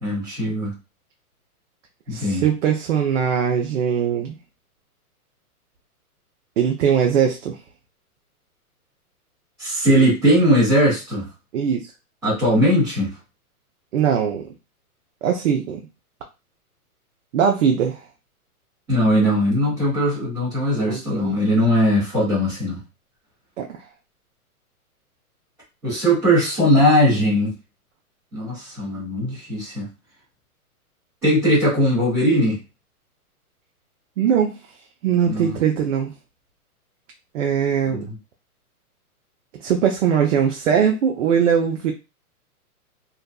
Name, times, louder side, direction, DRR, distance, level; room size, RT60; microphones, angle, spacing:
voice 1, 0.0-0.7 2.1-2.5 9.6-11.2 12.2-13.1 18.9-22.8 25.8-27.5 28.3-29.9 31.2-32.6 35.3-35.5 37.9-38.1, equal, 5° right, -18 dB, 0.4 m, -19 dB
voice 2, 2.1-4.4 6.6-7.6 11.5-11.9 13.9-14.4 15.2-15.8 17.3-18.0 20.7-21.4 23.6-23.7 34.2-34.6 35.0-36.1 37.3-38.1 39.6-41.9, right 8 dB, 55° right, 2 dB, 0.5 m, -20 dB
2.5 x 2.3 x 2.2 m, 0.27 s
hypercardioid pair, 135°, 45 cm